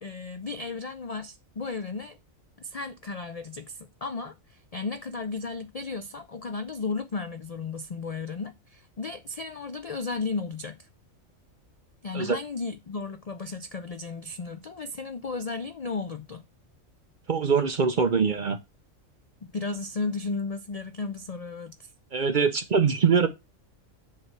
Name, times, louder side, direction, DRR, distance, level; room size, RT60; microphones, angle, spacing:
voice 1, 0.0-2.2 2.6-10.9 12.0-16.4 19.4-21.9, left 4 dB, 65° left, 0.3 m, -34 dB
voice 2, 17.3-18.6 22.1-23.3, right 6 dB, 50° right, 0.6 m, -23 dB
7.5 x 3.3 x 5.8 m
omnidirectional pair, 1.4 m